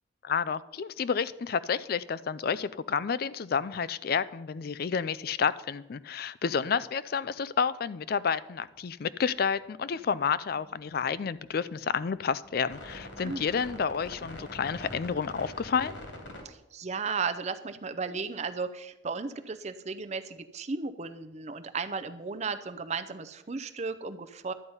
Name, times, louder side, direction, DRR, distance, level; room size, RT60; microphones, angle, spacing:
voice 1, 0.2-16.0, left 6 dB, 50° left, 16 dB, 0.4 m, -30 dB
sound 1, 8.6-9.0 9.3-16.4, left 1 dB, 80° left, 2.8 m, -46 dB
voice 2, 16.4-24.5, right 4 dB, 35° right, 10 dB, 0.6 m, -35 dB
11.5 x 9.6 x 5.5 m, 0.96 s
head